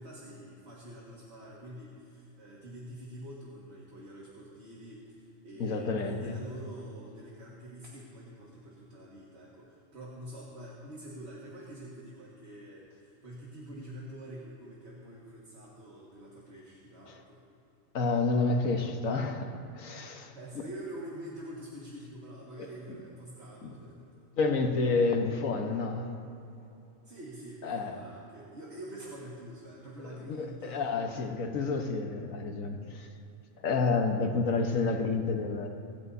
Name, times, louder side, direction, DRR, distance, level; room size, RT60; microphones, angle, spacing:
voice 1, 0.0-17.4 20.3-24.2 27.0-31.0 31.4-31.5, right 1 dB, 55° right, -5 dB, 2.1 m, -46 dB
voice 2, 5.6-6.3 17.9-20.3 23.6-23.7 24.4-26.1 27.6-28.0 30.3-33.1 33.6-35.7, left 3 dB, 75° left, 3 dB, 1.6 m, -29 dB
25.0 x 13.0 x 2.8 m, 2.8 s
omnidirectional pair, 1.4 m